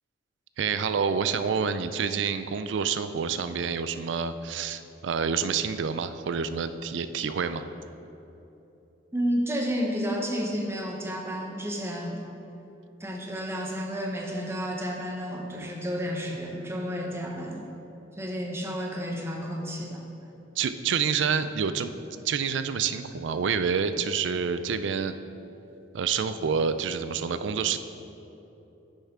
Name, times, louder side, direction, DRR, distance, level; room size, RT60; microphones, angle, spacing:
voice 1, 0.6-7.7 20.6-21.9 22.2-25.2 25.9-27.8, right 6 dB, 80° right, 11 dB, 0.4 m, -28 dB
voice 2, 9.1-12.2 13.0-17.6 18.1-20.0, equal, 15° right, 0 dB, 0.9 m, -31 dB
9.7 x 6.7 x 3.7 m, 3.0 s
head